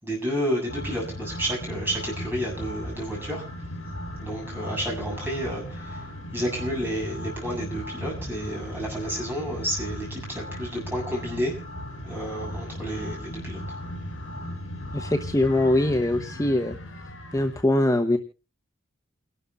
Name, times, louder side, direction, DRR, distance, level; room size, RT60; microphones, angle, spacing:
voice 1, 0.0-3.4 4.2-6.0 6.3-11.5 12.0-13.6, equal, 10° right, -1 dB, 7.3 m, -30 dB
sound 1, 0.7-17.6, equal, 70° left, 5.2 m, -37 dB
voice 2, 14.9-16.8 17.3-18.2, left 1 dB, 15° left, 4 dB, 0.9 m, -22 dB
29.5 x 12.5 x 2.4 m, 0.32 s
head